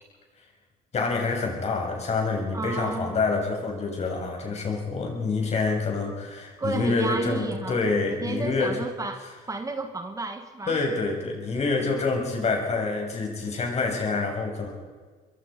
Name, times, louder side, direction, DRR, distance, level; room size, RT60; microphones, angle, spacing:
voice 1, 0.9-8.8 10.7-14.7, left 3 dB, 40° left, 1 dB, 6.9 m, -27 dB
voice 2, 2.5-3.2 6.6-10.8, right 3 dB, 20° right, 7 dB, 1.4 m, -32 dB
25.5 x 22.0 x 5.2 m, 1.4 s
cardioid pair, 110°, 17 cm